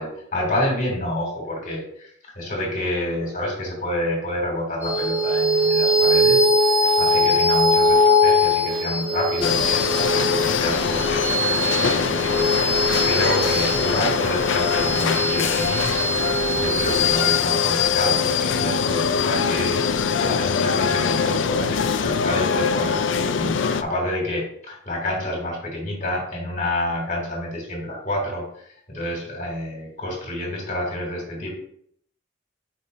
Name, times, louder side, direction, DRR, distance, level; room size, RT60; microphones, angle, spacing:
voice 1, 0.0-2.1 2.4-11.2 11.8-12.7 13.0-16.0 16.5-19.9 20.2-31.5, left 1 dB, 40° left, -2 dB, 2.7 m, -28 dB
sound 1, 4.8-19.6, left 1 dB, 10° right, 1.1 m, -22 dB
sound 2, 9.4-23.8, left 6 dB, 75° left, 0.4 m, -22 dB
8.3 x 5.1 x 2.7 m, 0.66 s
head